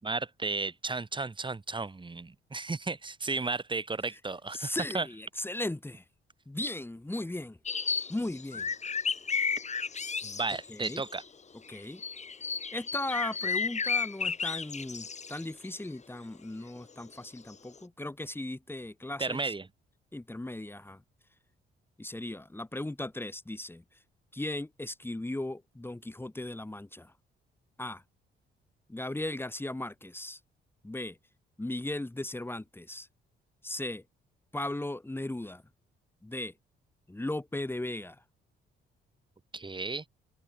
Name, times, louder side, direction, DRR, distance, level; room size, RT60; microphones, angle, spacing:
voice 1, 0.0-5.1 10.2-11.2 19.2-19.6 39.5-40.1, right 3 dB, 25° right, 5.6 m, -34 dB
voice 2, 4.5-6.0 6.5-7.6 8.1-8.7 10.7-11.0 11.7-12.0 12.7-19.5 20.1-21.0 22.0-23.8 24.3-27.1 27.8-28.0 28.9-30.4 30.8-31.2 31.6-33.1 33.6-34.0 34.5-35.6 36.2-36.5 37.1-38.2, left 1 dB, 10° left, 4.3 m, -37 dB
sound 1, 7.7-11.2 11.7-15.9 17.1-17.2 17.5-17.8, left 5 dB, 35° left, 3.2 m, -33 dB
open air
cardioid pair, 90°, 20 cm